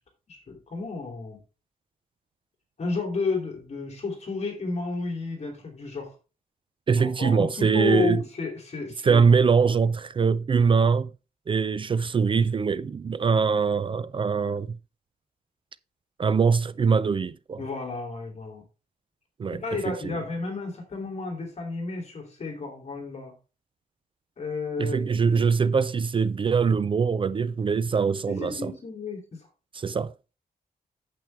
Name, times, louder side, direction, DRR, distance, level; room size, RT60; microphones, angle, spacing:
voice 1, 0.3-1.4 2.8-6.1 7.0-9.2 17.6-18.6 19.5-23.3 24.4-25.1 28.3-29.5, left 4 dB, 45° left, 2.8 m, -32 dB
voice 2, 6.9-8.2 9.0-11.1 11.5-14.8 16.2-17.6 19.4-20.2 24.8-28.7 29.7-30.1, right 5 dB, 35° right, 0.4 m, -23 dB
8.9 x 7.5 x 3.4 m
wide cardioid pair, 165°, 16 cm